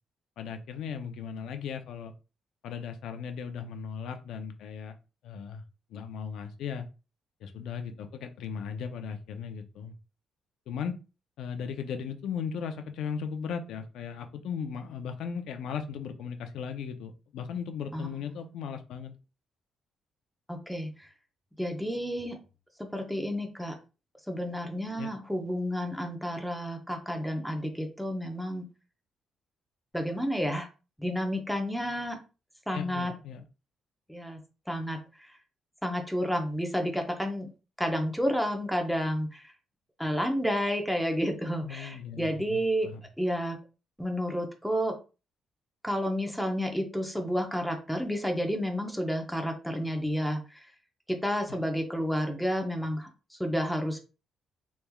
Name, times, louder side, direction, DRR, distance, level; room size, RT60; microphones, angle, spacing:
voice 1, 0.4-2.1 2.6-5.0 5.2-5.6 5.9-6.9 7.4-9.9 10.7-11.0 11.4-19.2 25.0-25.1 32.7-33.4 41.6-43.0 51.5-51.6, left 7 dB, 80° left, 7 dB, 0.5 m, -37 dB
voice 2, 20.5-21.1 21.6-22.4 22.8-23.8 24.3-28.7 29.9-30.7 31.0-32.2 32.7-33.1 34.1-34.4 34.7-35.4 35.8-37.5 37.8-39.5 40.0-42.9 43.2-43.6 44.0-44.9 45.8-50.7 51.1-54.0, equal, ahead, 4 dB, 0.6 m, -30 dB
3.4 x 3.0 x 2.2 m, 0.32 s
cardioid pair, 115°, 0 cm